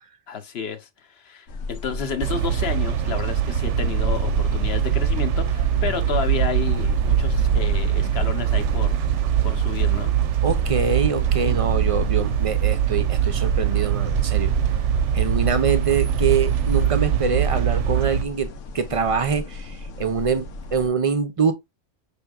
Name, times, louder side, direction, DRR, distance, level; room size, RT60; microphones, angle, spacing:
voice 1, 0.3-9.0 9.4-10.2, left 7 dB, 60° left, 1.0 m, -31 dB
sound 1, 1.5-20.9, left 2 dB, 85° left, 1.1 m, -35 dB
sound 2, 2.2-18.2, right 9 dB, 75° right, 0.9 m, -22 dB
voice 2, 10.4-14.5 15.1-21.5, right 6 dB, 35° right, 0.6 m, -24 dB
5.7 x 3.5 x 2.2 m
omnidirectional pair, 1.2 m